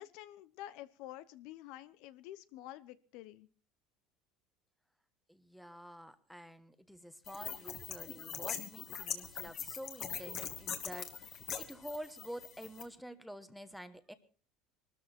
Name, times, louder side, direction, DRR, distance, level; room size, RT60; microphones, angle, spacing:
voice 1, 0.0-3.5, left 14 dB, 65° left, 15 dB, 0.9 m, -49 dB
voice 2, 5.3-14.1, equal, ahead, 10 dB, 1.2 m, -48 dB
sound 1, 7.3-12.8, left 8 dB, 40° left, 2.2 m, -42 dB
21.5 x 13.5 x 4.4 m, 0.39 s
cardioid pair, 145°, 0 cm